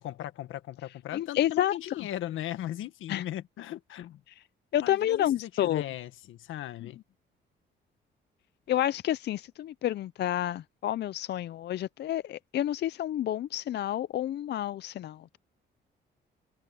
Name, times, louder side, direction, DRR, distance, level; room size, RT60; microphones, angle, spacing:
voice 1, 0.0-4.2 4.8-7.0, left 13 dB, 85° left, 1.6 m, -38 dB
voice 2, 1.1-1.7 3.1-3.2 4.7-5.8 8.7-15.4, left 12 dB, 60° left, 0.5 m, -29 dB
cardioid pair, 90°, 20 cm